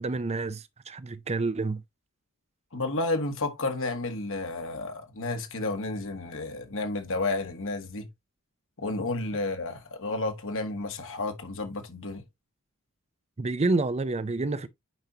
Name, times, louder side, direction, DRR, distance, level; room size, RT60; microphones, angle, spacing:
voice 1, 0.0-1.8 13.4-14.7, right 3 dB, 30° right, 0.6 m, -28 dB
voice 2, 2.7-8.1 8.8-12.2, left 2 dB, 65° left, 1.8 m, -31 dB
9.0 x 5.3 x 2.8 m
head